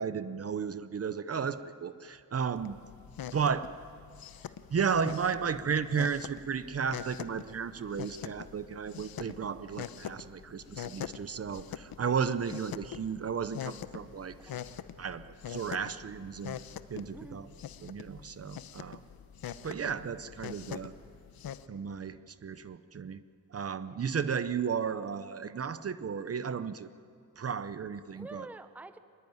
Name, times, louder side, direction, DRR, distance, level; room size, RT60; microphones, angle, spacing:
voice 1, 0.0-2.8 3.3-3.7 4.7-14.5 15.0-16.6 16.9-17.5 17.8-19.0 19.6-20.9 21.7-23.2 23.5-26.9 27.4-28.5, right 6 dB, 45° right, 13 dB, 0.7 m, -34 dB
sound 1, 2.6-21.6, left 9 dB, 90° left, 0.9 m, -44 dB
voice 2, 14.5-14.8 17.1-17.4 23.8-24.1 28.1-29.0, right 2 dB, 5° right, 11 dB, 0.7 m, -48 dB
23.5 x 21.0 x 9.4 m, 2.4 s
wide cardioid pair, 145°, 35 cm